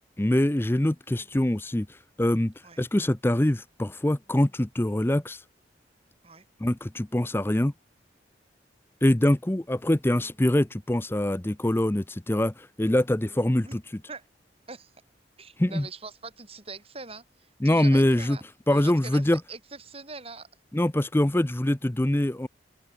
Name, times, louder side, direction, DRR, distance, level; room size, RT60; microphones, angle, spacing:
voice 1, 0.2-5.4 6.6-7.7 9.0-13.8 15.6-15.9 17.6-18.4 18.7-19.4 20.7-22.5, left 1 dB, 15° left, 0.6 m, -24 dB
voice 2, 15.4-18.4 18.7-20.5, right 4 dB, 35° right, 7.8 m, -42 dB
open air
head